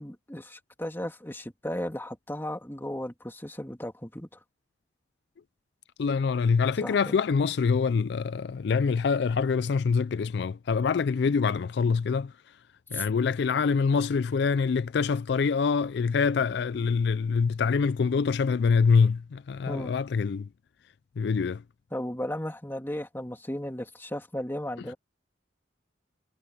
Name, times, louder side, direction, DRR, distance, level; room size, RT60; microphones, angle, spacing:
voice 1, 0.0-4.3 6.8-7.2 12.9-13.1 19.7-19.9 21.9-24.9, left 1 dB, 10° left, 2.8 m, -35 dB
voice 2, 6.0-12.3 12.9-20.5 21.2-21.6, left 5 dB, 60° left, 0.4 m, -25 dB
head